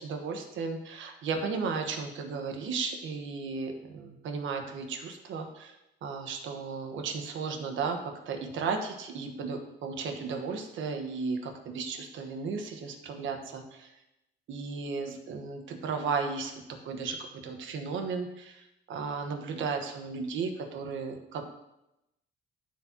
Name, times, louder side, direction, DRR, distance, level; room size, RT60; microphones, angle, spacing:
voice 1, 0.0-5.7 6.0-13.9 14.5-21.4, right 5 dB, 80° right, 4 dB, 1.3 m, -35 dB
14.0 x 4.7 x 2.9 m, 0.89 s
cardioid pair, 90°, 20 cm